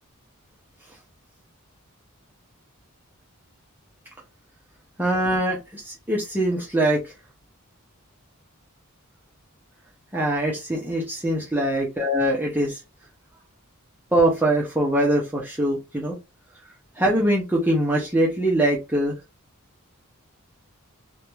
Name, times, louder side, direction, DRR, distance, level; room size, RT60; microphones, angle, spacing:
voice 1, 5.0-7.1 10.1-12.8 14.1-16.2 17.0-19.1, right 1 dB, 10° right, -4 dB, 0.6 m, -23 dB
2.5 x 2.2 x 3.0 m, 0.25 s
head